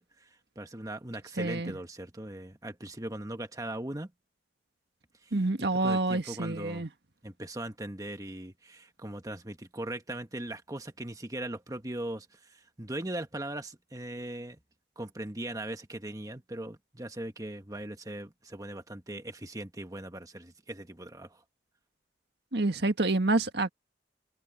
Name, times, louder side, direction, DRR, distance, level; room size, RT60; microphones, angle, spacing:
voice 1, 0.0-4.1 5.2-5.3 5.8-6.9 7.2-14.6 15.0-21.4, right 1 dB, 20° right, 1.4 m, -39 dB
voice 2, 1.4-1.7 5.3-6.9 22.5-23.7, right 2 dB, 65° right, 1.7 m, -28 dB
head